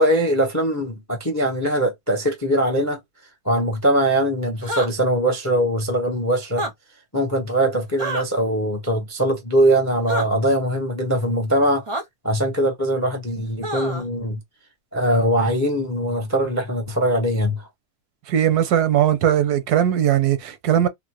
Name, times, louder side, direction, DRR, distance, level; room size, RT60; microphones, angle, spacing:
voice 1, 0.0-3.0 3.4-6.7 7.1-11.8 12.2-14.4 14.9-17.6, right 1 dB, 20° left, 0.4 m, -21 dB
sound 1, 4.6-4.9 6.5-6.7 8.0-8.2 10.1-10.3 11.9-12.0 13.6-14.0, right 1 dB, 45° right, 0.4 m, -27 dB
voice 2, 18.3-20.9, right 10 dB, 85° right, 1.2 m, -19 dB
3.6 x 2.1 x 2.8 m
omnidirectional pair, 1.6 m